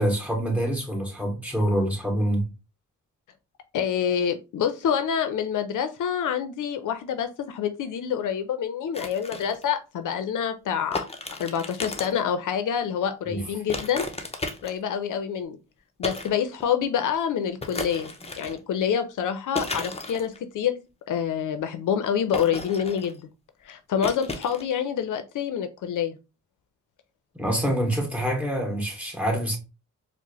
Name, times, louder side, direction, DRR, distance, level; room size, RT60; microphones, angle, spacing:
voice 1, 0.0-2.5 13.3-13.4 27.3-29.6, right 1 dB, 5° right, 1.7 m, -26 dB
voice 2, 3.7-11.0 11.4-14.1 14.6-15.6 16.0-18.1 18.4-20.8 21.1-23.3 23.6-26.2, left 8 dB, 75° left, 0.5 m, -27 dB
sound 1, 8.9-9.7 10.9-12.2 13.7-14.9 16.0-16.3 16.6-16.7 17.6-18.6 19.5-20.4 22.3-23.2 24.0-24.6, left 3 dB, 20° left, 0.6 m, -34 dB
4.6 x 2.1 x 2.9 m
cardioid pair, 80°, 31 cm